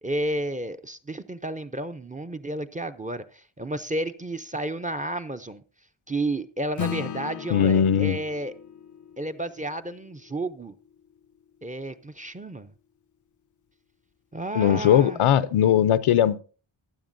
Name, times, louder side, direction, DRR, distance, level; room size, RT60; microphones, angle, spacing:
voice 1, 0.0-5.6 6.1-8.5 9.2-10.7 11.6-12.7 14.3-15.2, right 1 dB, 15° right, 0.5 m, -32 dB
Acoustic guitar / Strum, 6.8-11.6, left 8 dB, 40° left, 0.4 m, -38 dB
voice 2, 7.5-8.2 14.5-16.4, left 10 dB, 80° left, 0.7 m, -19 dB
14.5 x 9.6 x 2.6 m
wide cardioid pair, 100°, 49 cm